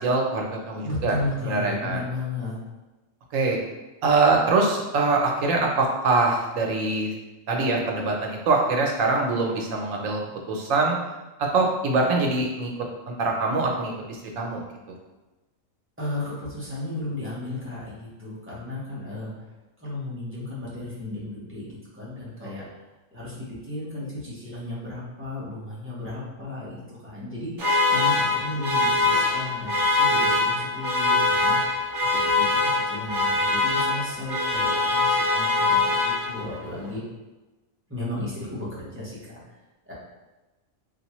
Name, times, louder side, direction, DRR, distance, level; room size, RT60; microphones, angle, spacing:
voice 1, 0.0-1.1 1.4-2.0 3.3-3.6 4.0-7.1 7.5-10.2 10.5-11.0 11.4-12.7 13.1-14.6 22.4-22.5, right 3 dB, 80° right, 0 dB, 1.1 m, -23 dB
voice 2, 0.8-2.6 16.0-19.3 19.8-22.7 23.1-31.6 32.0-37.0 37.9-39.4 39.8-39.9, left 2 dB, 10° right, -8 dB, 0.9 m, -34 dB
sound 1, 27.6-36.6, left 3 dB, 50° right, 0.8 m, -23 dB
3.4 x 2.5 x 3.0 m, 1.1 s
omnidirectional pair, 1.3 m